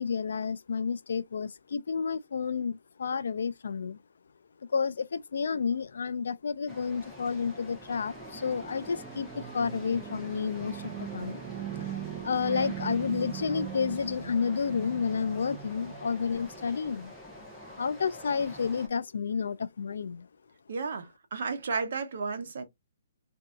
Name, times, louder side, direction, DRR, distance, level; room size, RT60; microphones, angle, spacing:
voice 1, 0.0-4.0 4.7-11.4 11.8-11.9 12.2-17.1 17.8-20.3, left 6 dB, 75° left, 0.4 m, -31 dB
sound 1, 6.7-18.9, equal, ahead, 0.9 m, -46 dB
sound 2, 7.5-16.7, right 11 dB, 20° right, 0.4 m, -41 dB
voice 2, 20.7-22.6, right 4 dB, 60° right, 0.9 m, -33 dB
3.8 x 2.7 x 2.3 m
hypercardioid pair, 170°, 0 cm